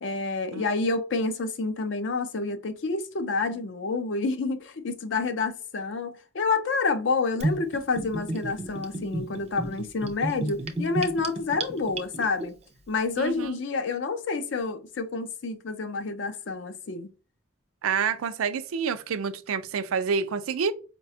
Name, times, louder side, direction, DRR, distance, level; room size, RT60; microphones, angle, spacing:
voice 1, 0.0-12.6 12.9-17.1, left 3 dB, 60° left, 0.5 m, -28 dB
Gurgling / Bathtub (filling or washing), 7.4-12.4, right 1 dB, 30° right, 0.4 m, -32 dB
voice 2, 13.2-13.6 17.8-20.7, right 6 dB, 90° right, 0.4 m, -28 dB
4.8 x 2.2 x 2.7 m
head